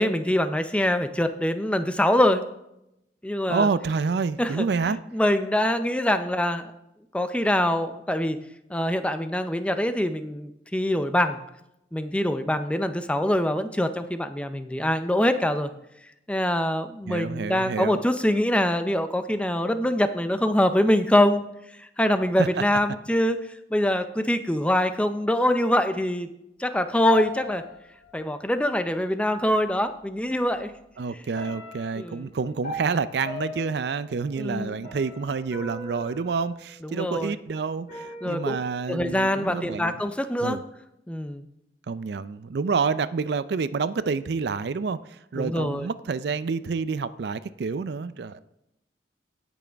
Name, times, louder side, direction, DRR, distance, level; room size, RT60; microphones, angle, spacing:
voice 1, 0.0-2.4 3.2-3.7 4.4-6.7 7.1-8.4 8.7-11.4 11.9-15.7 16.3-21.4 21.8-23.4 23.7-26.3 26.6-27.6 28.1-30.7 32.0-32.3 34.4-34.8 36.8-37.4 38.2-38.6 38.9-40.6 41.1-41.5 45.4-45.9, left 1 dB, 5° left, 9 dB, 0.5 m, -24 dB
voice 2, 3.5-5.0 17.1-18.0 22.4-22.5 31.0-40.0 40.4-40.6 41.9-48.4, right 5 dB, 70° right, 15 dB, 0.4 m, -28 dB
sound 1, 27.1-28.5 29.7-29.8 30.3-30.8 31.3-37.3 37.9-38.7, left 2 dB, 45° left, 3.3 m, -40 dB
17.0 x 6.2 x 3.4 m, 0.84 s
head